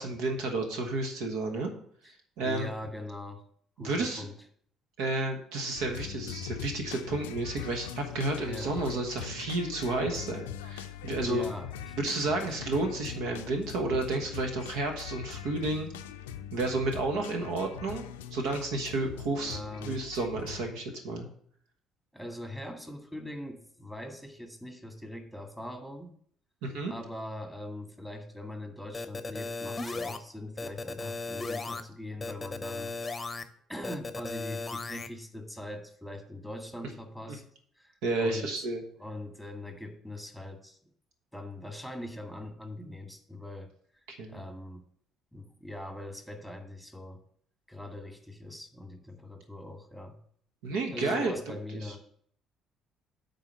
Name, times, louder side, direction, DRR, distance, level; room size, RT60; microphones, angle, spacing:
voice 1, 0.0-1.7 2.4-2.7 3.8-4.3 5.0-11.4 12.0-15.9 16.5-18.1 18.3-21.3 26.6-26.9 37.3-37.4 38.0-38.8 44.1-44.4 50.6-51.6 51.8-52.0, right 2 dB, 65° right, 4 dB, 1.3 m, -31 dB
voice 2, 2.4-3.4 3.8-4.3 8.5-8.7 11.2-12.0 12.4-12.5 19.4-20.0 22.1-26.1 26.9-33.4 33.7-37.4 37.8-37.9 38.2-38.5 39.0-40.8 41.3-43.7 44.3-44.8 45.3-47.2 47.7-50.2 50.9-52.0, left 1 dB, 5° right, 5 dB, 1.8 m, -41 dB
sound 1, 5.7-20.7, left 9 dB, 75° left, 0.5 m, -41 dB
sound 2, 28.9-30.2 30.6-31.8 32.2-33.4 33.8-35.1, left 3 dB, 25° left, 0.8 m, -36 dB
8.8 x 4.0 x 6.9 m, 0.62 s
figure-of-eight pair, 50°, 0 cm